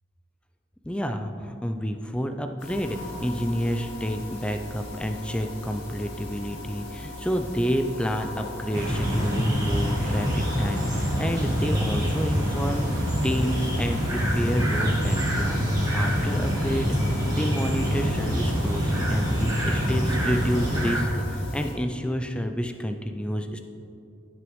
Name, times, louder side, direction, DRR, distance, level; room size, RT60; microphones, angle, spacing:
voice 1, 0.8-12.9 13.2-23.6, equal, 5° left, 6 dB, 0.4 m, -29 dB
sound 1, 2.6-21.7, left 2 dB, 60° left, 2.0 m, -39 dB
sound 2, 8.7-21.0, equal, 20° right, 1.8 m, -25 dB
15.0 x 6.2 x 3.1 m, 2.6 s
head